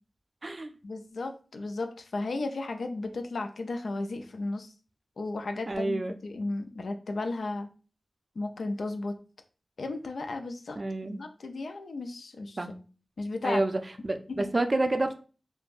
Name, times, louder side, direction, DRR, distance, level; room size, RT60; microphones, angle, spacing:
voice 1, 0.8-4.7 5.2-7.7 8.4-9.2 9.8-12.6 13.2-13.6 14.3-14.5, left 2 dB, 85° left, 6 dB, 0.3 m, -34 dB
voice 2, 5.7-6.1 10.8-11.2 12.6-12.8 13.4-15.2, right 2 dB, 50° right, 8 dB, 0.4 m, -29 dB
3.1 x 2.2 x 2.4 m, 0.36 s
cardioid pair, 40°, 0 cm